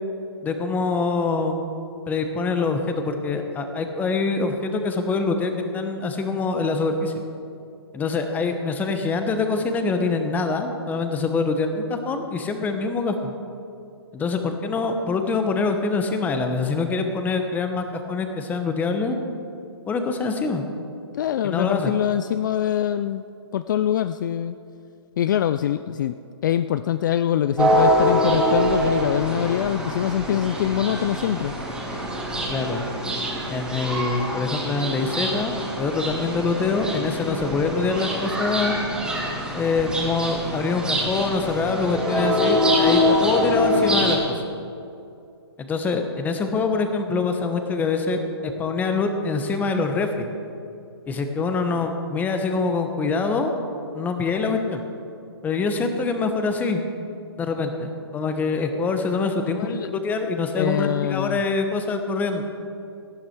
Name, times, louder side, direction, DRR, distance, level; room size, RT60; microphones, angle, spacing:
voice 1, 0.4-1.6 2.1-7.1 7.9-13.3 14.1-19.2 19.9-20.6 21.4-21.9 32.5-32.8 33.5-38.7 39.5-44.4 45.6-50.3 51.1-53.5 53.9-54.8 55.4-56.8 57.4-62.4, left 4 dB, 10° left, 6 dB, 1.1 m, -25 dB
voice 2, 21.1-23.2 23.5-24.6 25.2-26.2 26.4-31.5 51.7-51.9 59.5-59.9 60.5-61.4, left 10 dB, 45° left, 12 dB, 0.4 m, -24 dB
sound 1, 27.6-44.1, equal, 5° right, 2.7 m, -24 dB
18.0 x 11.5 x 4.6 m, 2.6 s
hypercardioid pair, 145°, 14 cm